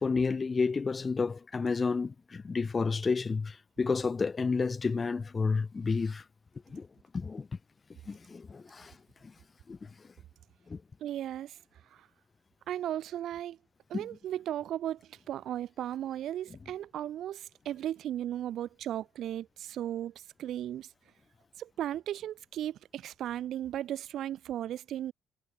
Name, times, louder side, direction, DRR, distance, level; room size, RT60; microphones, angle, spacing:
voice 1, 0.0-6.2 6.7-6.9 7.1-7.5 8.1-8.9 9.7-9.8 10.7-10.8 13.9-14.0, left 4 dB, 25° left, 1.4 m, -30 dB
voice 2, 11.0-11.6 12.7-13.6 13.9-20.1 20.4-20.9 21.6-25.1, right 11 dB, 75° right, 2.9 m, -36 dB
cardioid pair, 150°, 0 cm